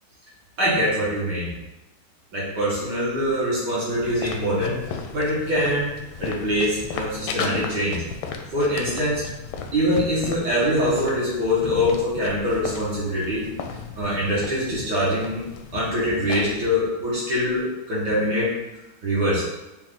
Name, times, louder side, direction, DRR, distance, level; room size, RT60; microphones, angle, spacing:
voice 1, 0.6-1.5 2.3-8.0 8.5-9.3 9.7-13.4 14.0-15.4 15.7-18.5 19.0-19.4, equal, 55° right, -8 dB, 1.8 m, -24 dB
sound 1, 3.9-16.7, left 5 dB, 75° left, 1.2 m, -35 dB
5.4 x 2.5 x 3.7 m, 1.0 s
omnidirectional pair, 2.4 m